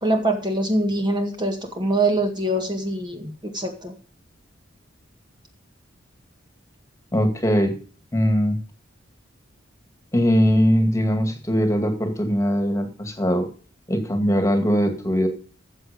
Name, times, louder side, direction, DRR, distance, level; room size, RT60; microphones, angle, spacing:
voice 1, 0.0-3.9, right 1 dB, 25° right, 4 dB, 1.8 m, -24 dB
voice 2, 7.1-7.8 8.1-8.6 10.1-13.5 13.9-15.3, equal, 15° left, 6 dB, 2.1 m, -20 dB
14.0 x 7.9 x 5.2 m, 0.39 s
head